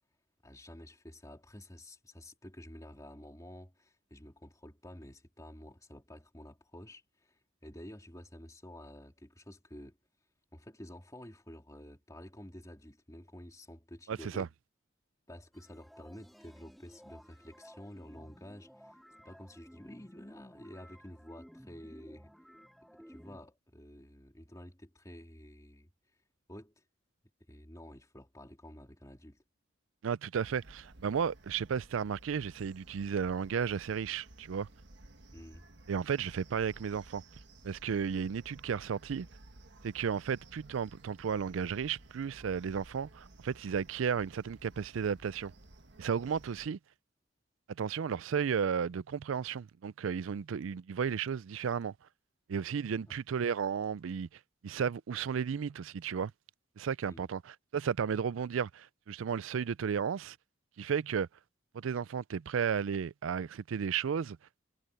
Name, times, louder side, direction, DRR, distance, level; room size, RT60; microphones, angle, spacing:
voice 1, 0.4-10.0 10.5-14.5 15.3-19.0 19.2-22.3 23.1-25.9 26.5-26.8 27.5-29.4 35.3-35.6 53.0-53.2 57.1-57.3, left 1 dB, 15° left, 3.2 m, -50 dB
voice 2, 14.1-14.5 30.0-34.7 35.9-37.2 37.6-39.3 39.8-45.5 46.0-46.8 47.8-51.9 52.5-54.3 54.6-56.3 56.8-60.4 60.8-61.3 61.7-64.4, right 7 dB, 80° right, 0.4 m, -33 dB
sound 1, 15.5-23.4, equal, ahead, 2.9 m, -56 dB
sound 2, 30.4-46.7, right 2 dB, 60° right, 1.6 m, -56 dB
head